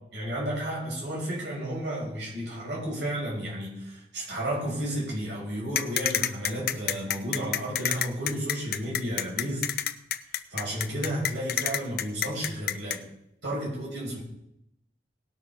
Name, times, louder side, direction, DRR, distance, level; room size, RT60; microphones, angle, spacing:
voice 1, 0.1-9.6 10.5-13.0 13.4-14.2, right 1 dB, 80° right, -3 dB, 6.2 m, -32 dB
sound 1, 5.7-13.0, left 10 dB, 60° left, 0.6 m, -28 dB
18.5 x 6.2 x 5.7 m, 0.79 s
head